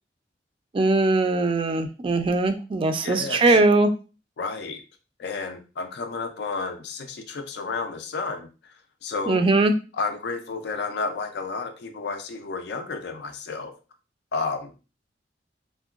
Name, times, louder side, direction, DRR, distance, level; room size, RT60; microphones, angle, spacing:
voice 1, 0.7-3.9 9.3-9.7, right 2 dB, 30° right, 8 dB, 0.3 m, -20 dB
voice 2, 3.0-3.6 4.4-4.8 5.2-8.5 9.0-9.4 9.9-13.7 14.3-14.7, left 4 dB, 65° left, 6 dB, 0.4 m, -31 dB
3.6 x 2.2 x 2.3 m, 0.32 s
head